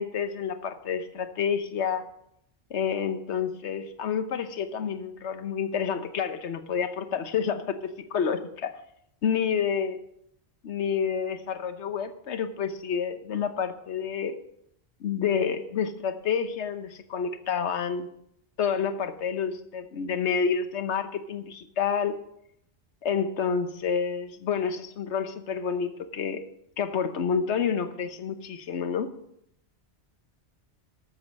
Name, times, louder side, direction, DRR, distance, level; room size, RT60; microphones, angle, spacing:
voice 1, 0.0-2.0 2.7-8.7 9.2-10.0 10.6-14.4 15.0-18.1 18.6-22.2 23.0-26.4 26.8-29.1, left 7 dB, 85° left, 10 dB, 1.2 m, -29 dB
13.0 x 7.1 x 5.3 m, 0.75 s
omnidirectional pair, 1.1 m